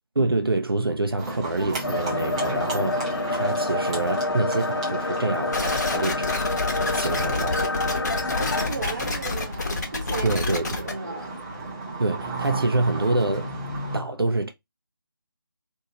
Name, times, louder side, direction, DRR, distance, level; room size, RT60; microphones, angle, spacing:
voice 1, 0.2-6.3 6.9-7.6 10.2-11.0 12.0-13.5 13.9-14.5, right 2 dB, 85° right, 0.5 m, -26 dB
Livestock farm animals working animals, 1.2-14.0, right 2 dB, 15° right, 0.7 m, -34 dB
sound 1, 1.8-8.7, left 2 dB, 90° left, 0.4 m, -28 dB
sound 2, 5.5-10.9, left 3 dB, 50° left, 0.8 m, -28 dB
voice 2, 8.2-10.4 10.8-11.3, right 3 dB, 40° right, 1.1 m, -35 dB
2.8 x 2.7 x 2.8 m
figure-of-eight pair, 155°, 12 cm